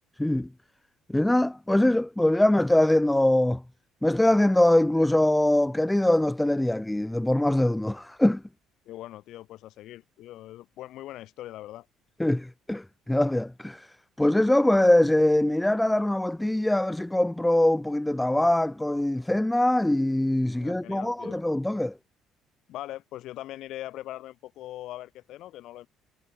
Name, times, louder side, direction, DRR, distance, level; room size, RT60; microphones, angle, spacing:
voice 1, 1.1-3.6 4.0-8.4 12.2-21.9, left 1 dB, 5° left, 0.9 m, -23 dB
voice 2, 8.9-11.9 20.5-21.4 22.7-25.9, left 14 dB, 70° left, 7.5 m, -41 dB
supercardioid pair, 85°, 0 cm